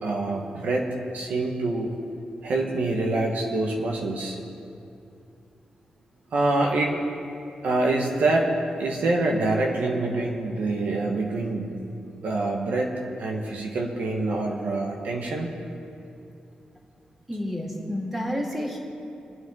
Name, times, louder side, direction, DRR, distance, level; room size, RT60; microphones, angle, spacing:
voice 1, 0.0-0.9 1.1-1.9 2.4-4.4 6.3-7.0 7.6-8.5 8.8-12.9 13.2-15.5, right 2 dB, 75° right, 0 dB, 1.6 m, -26 dB
voice 2, 17.3-18.8, equal, 10° right, -2 dB, 2.8 m, -30 dB
26.5 x 9.1 x 4.0 m, 2.6 s
wide cardioid pair, 115°, 3 cm